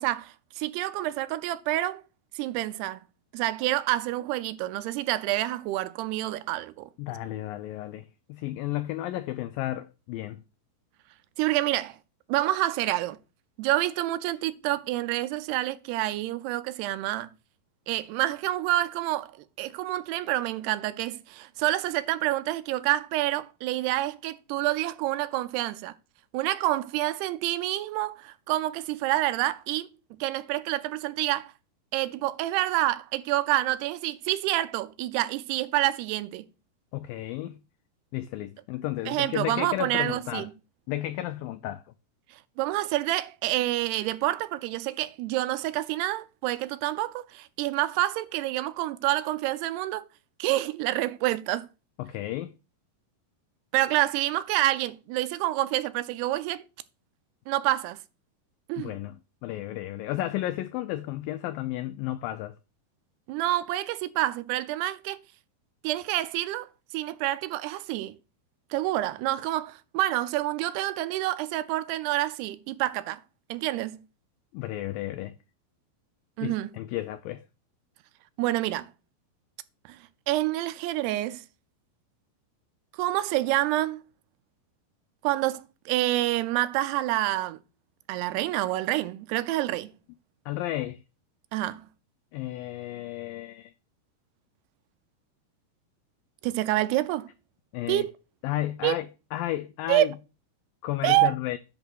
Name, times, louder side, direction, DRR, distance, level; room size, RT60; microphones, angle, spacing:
voice 1, 0.0-2.0 2.4-3.0 3.3-6.9 11.4-12.0 12.3-13.2 13.6-17.3 17.9-19.3 19.6-25.9 26.3-29.9 30.2-31.5 31.9-36.5 39.1-40.5 42.6-50.1 50.4-51.7 53.7-56.6 57.5-58.0 58.7-59.0 63.3-65.2 65.8-66.7 66.9-68.1 68.7-73.2 73.5-74.0 76.4-76.7 78.4-78.9 79.9-80.0 80.3-81.4 83.0-84.0 85.2-87.6 88.1-89.9 91.5-91.9 96.4-97.3 97.9-98.1 98.8-99.0 99.9-100.1 101.0-101.4, right 16 dB, 85° right, 2.7 m, -28 dB
voice 2, 7.0-10.4 36.9-37.5 38.1-40.5 40.9-41.8 52.0-52.5 58.8-59.2 59.4-62.5 74.5-75.3 76.4-77.4 90.5-91.0 92.3-93.7 97.7-98.1 98.4-100.1 100.8-101.6, left 14 dB, 90° left, 2.0 m, -33 dB
10.5 x 3.7 x 6.3 m
omnidirectional pair, 4.7 m